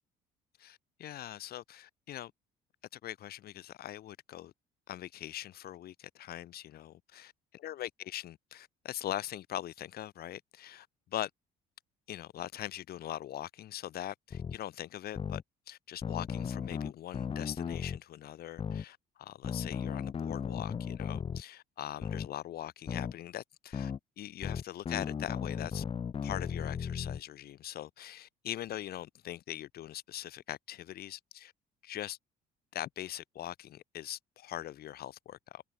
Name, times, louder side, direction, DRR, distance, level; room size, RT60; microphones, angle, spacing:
voice 1, 0.6-2.3 2.9-4.5 4.9-7.3 7.6-11.3 12.1-15.4 15.7-25.8 26.2-31.5 31.8-32.2 32.7-35.6, left 12 dB, 65° left, 6.5 m, -42 dB
sound 1, 14.3-14.6 15.2-15.4 16.0-18.0 18.6-18.8 19.4-21.4 22.0-22.3 22.9-23.1 23.7-24.0 24.4-27.2, left 7 dB, 35° left, 1.0 m, -36 dB
cardioid pair, 110°, 17 cm